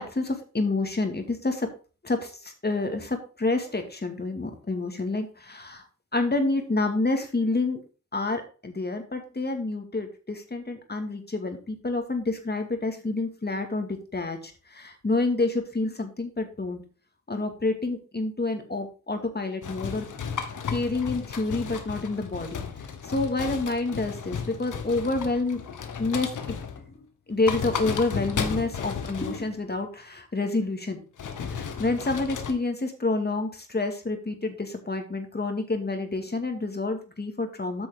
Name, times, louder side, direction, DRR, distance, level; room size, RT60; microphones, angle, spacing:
voice 1, 0.0-1.7 2.0-5.8 6.1-7.8 8.1-16.8 17.3-20.1 20.7-22.6 23.0-25.6 26.0-26.3 26.9-27.0 27.3-31.0 31.4-37.9, left 3 dB, 30° left, 5 dB, 2.2 m, -28 dB
sound 1, 19.6-26.9 27.3-29.6 31.2-32.5, left 6 dB, 75° left, 1.2 m, -34 dB
9.1 x 6.2 x 3.7 m, 0.36 s
cardioid pair, 45°, 31 cm